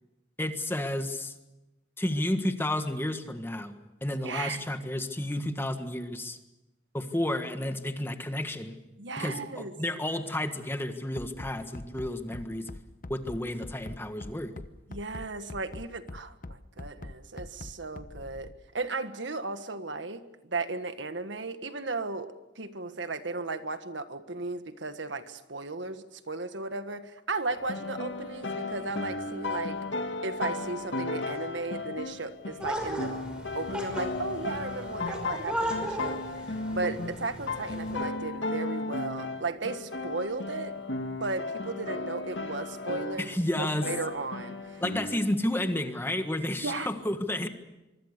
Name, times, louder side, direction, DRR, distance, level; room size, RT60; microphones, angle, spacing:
voice 1, 0.4-1.3 2.0-3.7 4.0-6.4 6.9-8.8 9.2-12.6 13.1-14.5 43.2-43.9 44.8-47.5, left 1 dB, 10° left, 7 dB, 1.6 m, -31 dB
voice 2, 4.2-4.6 9.0-9.7 14.9-29.8 30.2-33.2 33.5-36.2 36.7-40.8 41.2-43.3 43.6-44.8 46.6-47.0, right 3 dB, 75° right, 9 dB, 1.6 m, -35 dB
Bass drum, 11.2-18.5, left 1 dB, 45° left, 1.0 m, -42 dB
sound 1, 27.5-43.3 43.6-45.2, left 2 dB, 80° left, 1.9 m, -35 dB
sound 2, 32.6-38.0, equal, 5° right, 5.4 m, -36 dB
24.5 x 24.5 x 6.8 m, 0.97 s
head